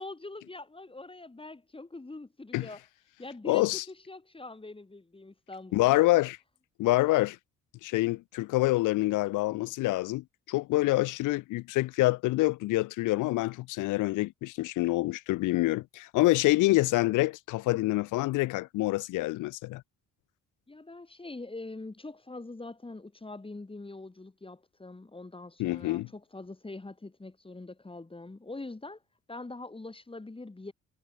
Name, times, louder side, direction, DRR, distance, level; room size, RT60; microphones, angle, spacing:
voice 1, 0.0-2.8 3.2-6.0 20.7-29.0 29.3-30.7, left 2 dB, 15° left, 6.2 m, -43 dB
voice 2, 3.4-3.8 5.7-6.4 6.8-7.4 7.8-19.8 25.6-26.1, left 19 dB, 85° left, 0.6 m, -26 dB
cardioid pair, 90°, 30 cm